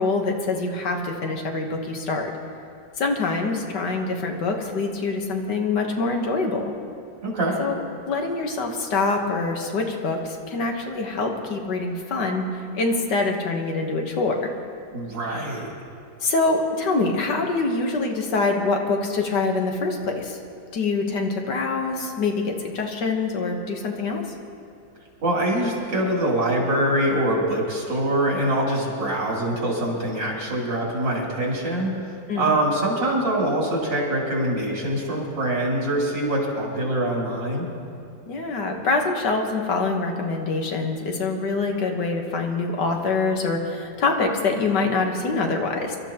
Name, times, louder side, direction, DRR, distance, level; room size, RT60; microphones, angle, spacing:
voice 1, 0.0-2.3 3.0-6.7 7.6-7.8 8.1-14.5 16.2-20.4 20.7-24.2 32.3-32.5 38.3-46.0, left 3 dB, 70° left, 2 dB, 1.8 m, -25 dB
voice 2, 7.2-7.6 14.9-15.7 25.2-31.9 32.4-37.7, right 1 dB, 80° right, -4 dB, 3.8 m, -24 dB
26.0 x 12.5 x 2.9 m, 2.5 s
omnidirectional pair, 1.9 m